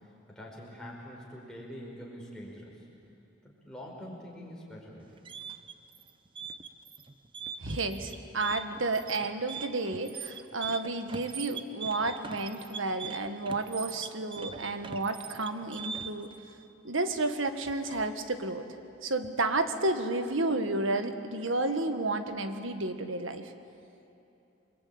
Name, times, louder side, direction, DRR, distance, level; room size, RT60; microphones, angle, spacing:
voice 1, 0.3-2.8 3.4-5.2, equal, 5° left, -4 dB, 5.3 m, -45 dB
sound 1, 5.0-16.3, right 6 dB, 25° right, 0.7 m, -41 dB
voice 2, 7.6-16.3 16.8-18.7 19.0-23.5, right 2 dB, 85° right, 8 dB, 1.7 m, -31 dB
29.0 x 23.0 x 8.9 m, 2.7 s
head